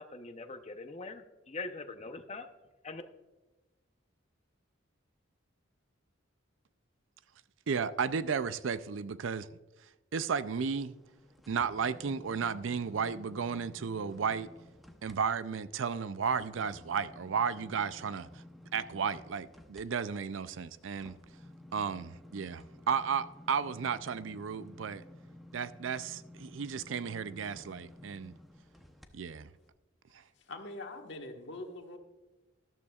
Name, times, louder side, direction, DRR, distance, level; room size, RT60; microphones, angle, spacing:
voice 1, 0.0-2.5 2.8-3.0, left 3 dB, 35° left, 0.8 m, -42 dB
voice 2, 7.7-9.5 10.1-10.9 11.5-14.5 15.0-18.4 18.7-21.2 21.7-25.0 25.5-28.3 29.1-29.5, right 6 dB, 75° right, 0.5 m, -34 dB
sound 1, 10.5-15.2 15.6-29.1 29.6-29.7, left 1 dB, ahead, 0.8 m, -54 dB
voice 3, 30.4-32.0, left 2 dB, 65° left, 1.5 m, -43 dB
13.5 x 12.5 x 2.4 m
head